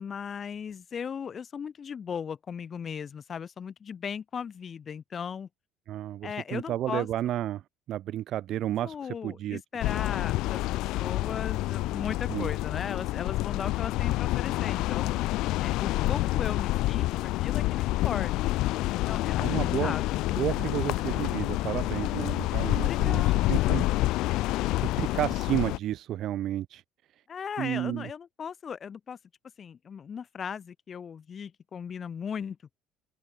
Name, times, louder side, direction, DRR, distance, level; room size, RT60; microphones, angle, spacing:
voice 1, 0.0-5.5 6.2-7.1 8.8-15.1 15.6-18.5 19.0-19.5 19.8-20.2 22.7-24.0 27.3-29.2 29.6-32.6, left 7 dB, 35° left, 2.5 m, -37 dB
voice 2, 5.9-7.6 7.9-9.0 9.2-9.6 12.3-12.5 19.4-19.9 20.4-23.2 23.5-23.9 24.8-26.8 27.6-28.1, right 12 dB, 60° right, 0.5 m, -31 dB
sound 1, 9.8-25.8, left 18 dB, 70° left, 0.6 m, -28 dB
open air
supercardioid pair, 100°, 0 cm